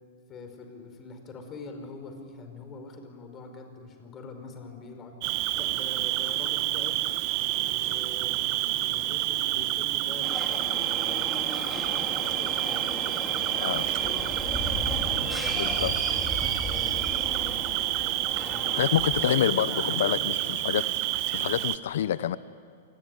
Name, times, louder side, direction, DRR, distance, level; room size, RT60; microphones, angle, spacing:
voice 1, 0.3-5.2 5.6-7.0 7.5-11.3 11.6-14.5 15.0-16.2 16.6-17.8 18.3-18.9 19.3-20.5, left 3 dB, 25° left, 6 dB, 5.2 m, -44 dB
Cricket, 5.2-21.8, right 16 dB, 45° right, 1.0 m, -28 dB
sound 1, 10.2-19.2, left 1 dB, 5° left, 3.7 m, -36 dB
voice 2, 15.6-15.9 18.7-20.4 20.6-20.8 21.3-22.4, left 11 dB, 70° left, 16 dB, 0.8 m, -27 dB
28.0 x 21.0 x 9.8 m, 2.4 s
hypercardioid pair, 135°, 0 cm